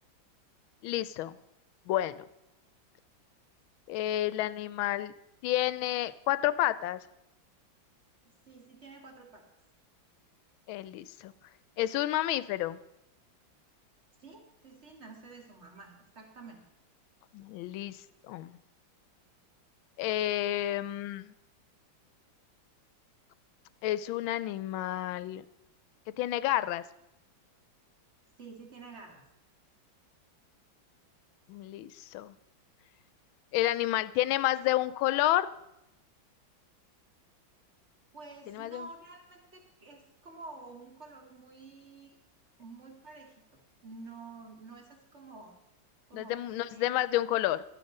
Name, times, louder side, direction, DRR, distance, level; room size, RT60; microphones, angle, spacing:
voice 1, 0.8-1.4 1.9-2.2 3.9-5.1 5.4-7.0 10.7-11.3 11.8-12.8 17.3-18.6 20.0-21.3 23.8-25.4 26.2-26.8 31.5-32.3 33.5-35.5 38.5-38.9 46.1-47.6, left 14 dB, 90° left, 15 dB, 1.4 m, -30 dB
voice 2, 8.5-9.4 14.2-16.7 28.4-29.2 38.1-42.2 42.6-43.3 43.8-45.6 46.1-47.0, right 3 dB, 35° right, 1 dB, 2.3 m, -49 dB
12.5 x 9.6 x 5.4 m, 0.88 s
omnidirectional pair, 2.2 m